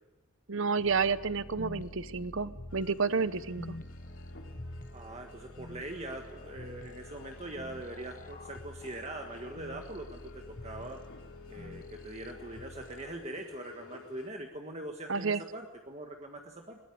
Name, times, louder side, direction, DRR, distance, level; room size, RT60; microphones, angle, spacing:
voice 1, 0.5-3.8 15.1-15.4, right 5 dB, 60° right, 16 dB, 0.8 m, -30 dB
sound 1, 0.8-13.3, left 1 dB, 40° left, 1.2 m, -47 dB
sound 2, 2.7-14.3, left 5 dB, 60° left, 3.7 m, -53 dB
voice 2, 4.9-11.0 11.5-16.8, right 1 dB, 30° right, 3 dB, 1.6 m, -42 dB
21.5 x 20.0 x 9.6 m, 1.1 s
head